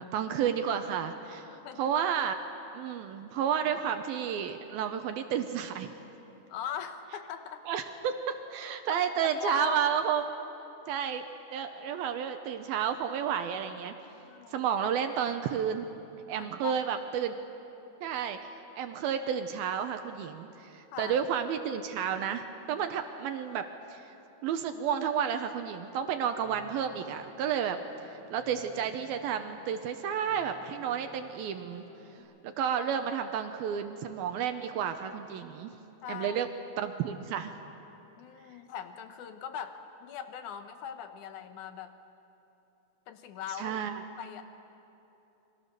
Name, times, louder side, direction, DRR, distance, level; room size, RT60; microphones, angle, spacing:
voice 1, 0.0-2.4 2.7-5.9 7.7-10.3 10.9-11.2 11.5-13.9 14.5-15.9 16.3-17.4 18.0-24.2 24.4-27.8 28.1-31.8 32.4-35.8 36.1-36.5 36.8-37.5 43.6-44.0, right 8 dB, 75° right, 7 dB, 2.5 m, -31 dB
voice 2, 1.5-1.9 6.5-7.6 8.9-9.0 9.3-10.0 14.2-14.7 16.4-16.8 20.9-21.2 32.2-32.3 36.0-36.4 38.2-41.9 43.1-43.8 44.2-44.4, left 8 dB, 65° left, 8 dB, 2.2 m, -40 dB
sound 1, 26.4-32.2, left 2 dB, 80° left, 9.1 m, -57 dB
29.5 x 24.0 x 6.8 m, 3.0 s
omnidirectional pair, 4.7 m